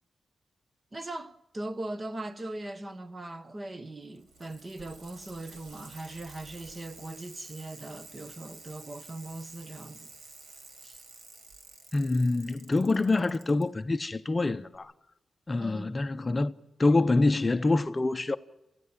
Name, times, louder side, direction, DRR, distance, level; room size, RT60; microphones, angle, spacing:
voice 1, 0.9-10.1 10.8-11.0 15.6-16.0, right 2 dB, 25° right, 1.2 m, -40 dB
Bicycle, 4.0-13.6 14.7-14.8, right 3 dB, 85° right, 4.8 m, -51 dB
voice 2, 11.9-14.9 15.5-16.5 16.8-18.4, left 2 dB, 25° left, 0.7 m, -26 dB
28.5 x 16.0 x 7.3 m
wide cardioid pair, 115°, 0 cm